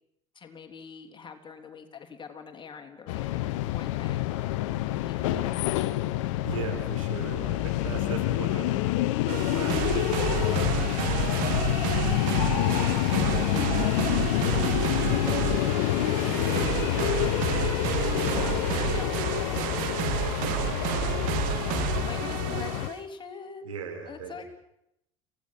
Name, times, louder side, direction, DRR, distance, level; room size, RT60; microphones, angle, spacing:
voice 1, 0.4-4.2 5.1-5.6 18.4-19.2 21.7-23.8 24.1-24.5, left 6 dB, 30° left, 5 dB, 3.6 m, -43 dB
sound 1, 3.1-22.9, left 16 dB, 65° left, 0.9 m, -27 dB
voice 2, 5.2-5.8 6.4-18.9 19.3-21.8 22.1-22.8 23.6-24.5, right 6 dB, 80° right, 2 dB, 4.8 m, -41 dB
sound 2, 9.3-23.0, right 20 dB, 55° right, 0.7 m, -31 dB
30.0 x 17.0 x 6.2 m, 0.80 s
figure-of-eight pair, 65°, 17 cm